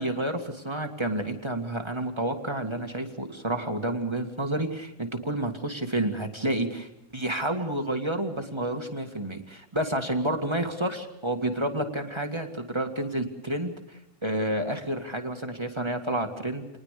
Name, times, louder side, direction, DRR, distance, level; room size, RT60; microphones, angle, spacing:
voice 1, 0.0-16.7, right 1 dB, 15° right, 3 dB, 1.0 m, -30 dB
28.0 x 20.0 x 6.7 m, 0.86 s
omnidirectional pair, 4.0 m